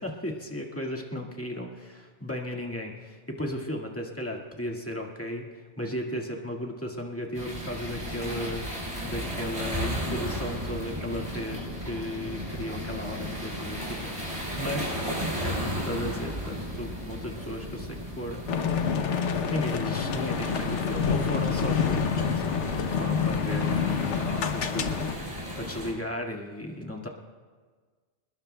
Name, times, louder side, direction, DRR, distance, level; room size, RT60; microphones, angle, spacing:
voice 1, 0.0-15.0 15.4-18.5 19.5-27.1, left 1 dB, 10° left, -1 dB, 1.9 m, -35 dB
sound 1, 7.3-25.9, equal, 25° right, 5.0 m, -35 dB
sound 2, 18.5-25.1, left 6 dB, 75° left, 1.2 m, -27 dB
26.5 x 21.0 x 2.3 m, 1.5 s
omnidirectional pair, 1.2 m